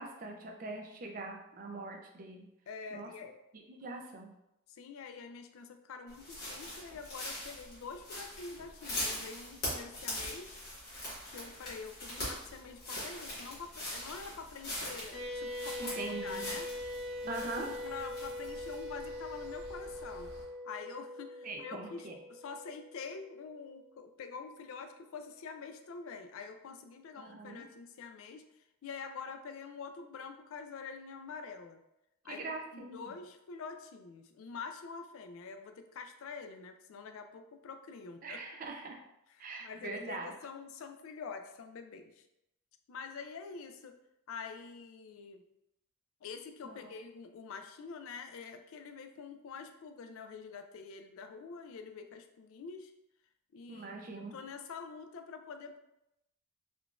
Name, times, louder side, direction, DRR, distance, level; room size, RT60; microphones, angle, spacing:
voice 1, 0.0-2.5 2.9-3.1 3.7-4.3 15.8-16.5 17.3-17.7 21.4-22.2 27.2-27.6 32.3-33.0 38.2-39.0 39.4-40.3 46.6-46.9 53.7-54.4, right 3 dB, 40° right, 2 dB, 0.4 m, -42 dB
voice 2, 2.7-3.3 4.7-10.6 11.3-16.7 17.2-20.3 20.6-28.4 28.8-31.8 32.2-32.4 32.7-38.4 39.3-42.3 42.9-43.9 44.3-45.4 46.2-52.9 53.5-53.9 54.3-55.8, left 5 dB, 70° left, 7 dB, 0.3 m, -46 dB
sound 1, 6.1-20.4, left 1 dB, 45° left, 1.3 m, -42 dB
sound 2, 15.1-23.8, left 1 dB, 5° left, 0.8 m, -42 dB
3.6 x 2.3 x 2.4 m, 0.86 s
head